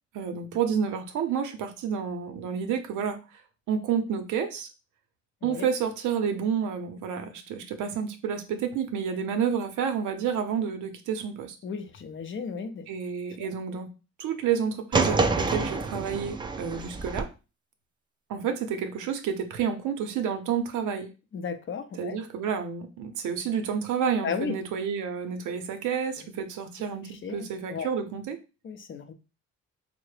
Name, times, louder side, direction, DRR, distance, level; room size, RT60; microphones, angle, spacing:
voice 1, 0.1-3.2 3.7-4.7 5.4-11.6 12.9-13.9 14.2-17.3 18.3-21.1 22.0-28.4, right 7 dB, 80° right, 7 dB, 0.6 m, -30 dB
voice 2, 11.6-12.9 13.4-13.5 21.3-22.2 24.2-24.5 27.1-27.9 28.6-29.1, left 6 dB, 40° left, 8 dB, 0.5 m, -34 dB
sound 1, 14.9-17.2, right 3 dB, 15° right, 0.3 m, -27 dB
3.6 x 2.0 x 3.2 m, 0.31 s
cardioid pair, 90°, 30 cm